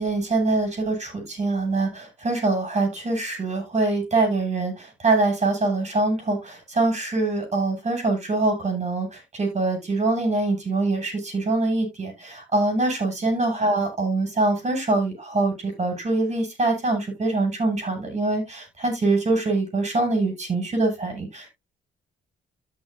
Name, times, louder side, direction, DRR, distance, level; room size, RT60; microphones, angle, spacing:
voice 1, 0.0-21.5, right 2 dB, 35° right, 3 dB, 7.0 m, -24 dB
13.5 x 6.7 x 2.7 m, 0.21 s
cardioid pair, 90°, 20 cm